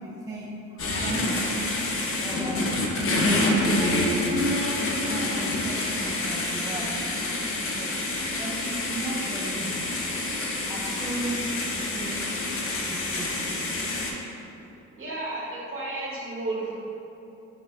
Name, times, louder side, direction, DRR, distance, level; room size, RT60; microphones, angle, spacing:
voice 1, 0.0-2.9 3.7-4.4 5.1-7.0 7.5-9.9 10.7-12.4 12.9-13.5, right 2 dB, 15° right, -4 dB, 0.3 m, -36 dB
sound 1, 0.8-14.1, left 2 dB, 45° left, 0.6 m, -27 dB
Clapping / Chirp tweet, 9.0-9.3 11.0-11.3, right 3 dB, 90° right, 0.7 m, -45 dB
voice 2, 15.0-16.7, right 2 dB, 45° right, -6 dB, 1.1 m, -32 dB
6.1 x 2.4 x 2.4 m, 2.9 s
cardioid pair, 90°, 30 cm